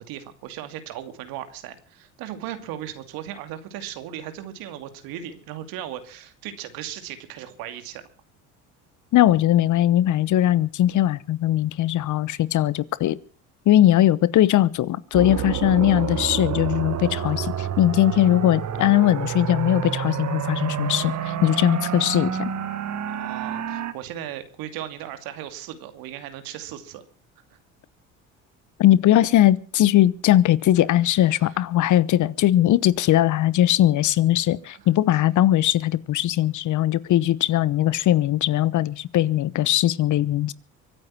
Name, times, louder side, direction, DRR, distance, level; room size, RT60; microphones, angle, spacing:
voice 1, 0.0-8.0 23.1-27.0 31.3-31.7 34.7-34.9, right 11 dB, 70° right, 2.7 m, -37 dB
voice 2, 9.1-13.2 13.7-22.5 28.8-40.5, left 13 dB, 55° left, 1.0 m, -20 dB
sound 1, 15.1-23.9, right 9 dB, 50° right, 1.8 m, -29 dB
24.0 x 9.2 x 6.1 m
hypercardioid pair, 70°, 36 cm